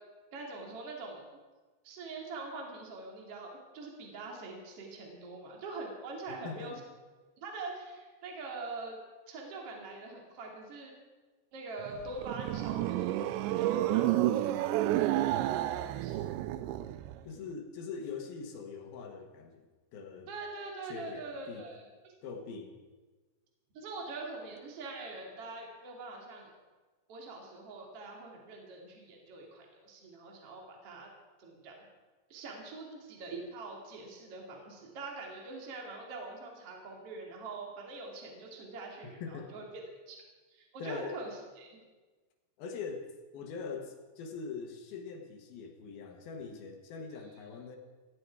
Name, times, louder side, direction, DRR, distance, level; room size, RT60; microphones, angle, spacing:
voice 1, 0.3-1.2 1.8-6.8 7.4-9.0 9.3-10.9 11.5-16.2 20.3-22.1 23.7-26.5 27.1-31.1 31.4-31.9 32.3-40.2 40.5-41.8, right 3 dB, 35° right, 0 dB, 2.9 m, -44 dB
voice 2, 6.3-6.7 17.3-19.6 19.9-20.3 20.8-21.6 22.2-22.7 39.0-39.5 40.8-41.2 42.6-47.8, left 5 dB, 65° left, 3 dB, 2.6 m, -42 dB
sound 1, 11.9-17.2, right 14 dB, 85° right, 2.5 m, -30 dB
17.0 x 15.0 x 4.8 m, 1.3 s
omnidirectional pair, 5.7 m